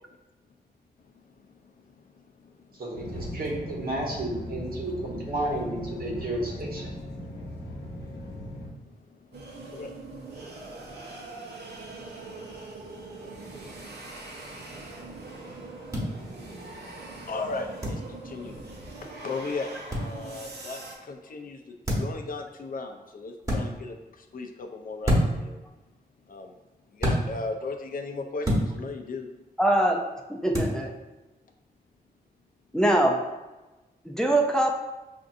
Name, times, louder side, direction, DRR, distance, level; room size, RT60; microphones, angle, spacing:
voice 1, 1.0-2.8 7.3-18.6 19.0-25.6 26.3-26.6 26.9-29.3, left 3 dB, 55° left, 4 dB, 0.5 m, -39 dB
voice 2, 2.8-6.9, right 1 dB, 65° right, -2 dB, 1.0 m, -32 dB
sound 1, 2.9-8.7, left 1 dB, 90° left, 0.9 m, -38 dB
sound 2, 9.3-21.0, right 2 dB, 85° right, 0.7 m, -42 dB
sound 3, 15.9-16.1 17.8-18.0 19.9-20.1 21.8-22.2 23.4-23.6 25.0-25.5 27.0-27.2 28.4-28.7 30.5-30.7, equal, 20° right, 1.2 m, -25 dB
voice 3, 29.6-30.0 30.3-30.9 32.7-33.2 34.1-34.7, right 1 dB, 5° left, 1 dB, 0.4 m, -22 dB
5.7 x 2.6 x 2.6 m, 1.1 s
wide cardioid pair, 95°, 17 cm